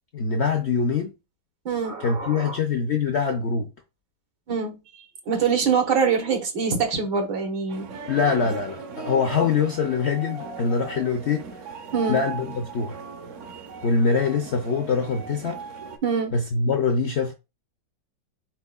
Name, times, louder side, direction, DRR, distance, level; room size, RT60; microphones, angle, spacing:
voice 1, 0.1-1.1 2.0-3.7 8.1-11.4 12.1-13.0 13.8-15.6 16.3-17.3, left 5 dB, 70° left, 0.6 m, -24 dB
voice 2, 1.7-2.6 4.5-4.8 5.3-7.9 11.9-12.2 16.0-16.3, right 5 dB, 85° right, 1.8 m, -24 dB
sound 1, 7.7-16.0, right 5 dB, 60° right, 0.9 m, -38 dB
4.6 x 4.2 x 2.3 m
omnidirectional pair, 1.8 m